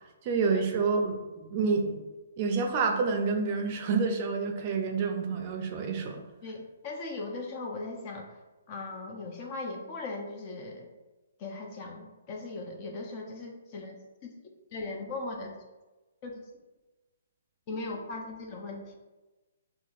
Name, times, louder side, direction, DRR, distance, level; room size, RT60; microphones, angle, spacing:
voice 1, 0.2-2.0 2.4-6.2, right 4 dB, 40° right, 4 dB, 0.5 m, -28 dB
voice 2, 6.4-8.3 8.7-10.9 11.4-14.0 14.2-14.3 14.7-15.5 16.2-16.4 17.7-18.9, left 3 dB, 35° left, 2 dB, 0.6 m, -38 dB
5.6 x 2.0 x 2.5 m, 1.1 s
hypercardioid pair, 145°, 0 cm